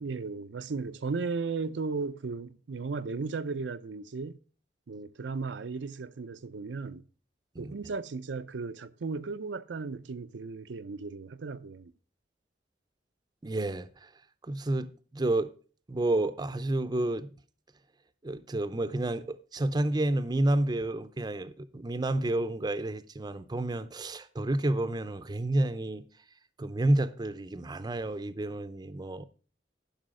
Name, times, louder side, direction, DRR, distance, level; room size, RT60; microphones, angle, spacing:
voice 1, 0.0-4.4 4.9-7.0 7.6-11.9, right 4 dB, 90° right, 0.5 m, -35 dB
voice 2, 13.4-14.1 14.4-15.5 15.9-17.3 18.2-26.0 26.6-29.2, right 1 dB, 25° right, 0.5 m, -30 dB
11.5 x 5.5 x 4.9 m
head